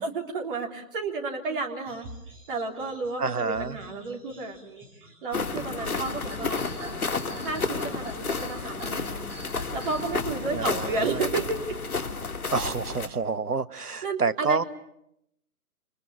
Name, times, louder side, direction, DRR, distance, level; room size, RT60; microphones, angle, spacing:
voice 1, 0.0-2.1 2.5-4.9 5.2-6.6 7.4-9.2 9.7-11.7 13.7-14.7, right 3 dB, 35° right, 1 dB, 3.7 m, -32 dB
sound 1, 1.9-11.9, right 1 dB, 10° right, 5.9 m, -46 dB
voice 2, 3.2-3.8 10.4-11.2 12.5-14.6, right 4 dB, 85° right, 16 dB, 1.2 m, -28 dB
sound 2, 5.3-13.1, left 4 dB, 70° left, 2.7 m, -31 dB
29.5 x 27.5 x 7.2 m, 0.79 s
figure-of-eight pair, 140°, 45 cm